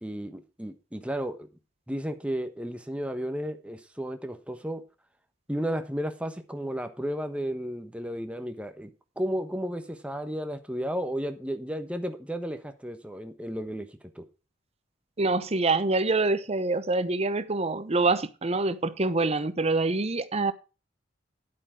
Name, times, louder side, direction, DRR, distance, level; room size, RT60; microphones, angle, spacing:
voice 1, 0.0-1.5 1.9-4.8 5.5-8.9 9.2-14.3, equal, 5° right, 1.2 m, -33 dB
voice 2, 15.2-20.5, right 3 dB, 35° right, 0.9 m, -25 dB
10.5 x 8.3 x 4.8 m
head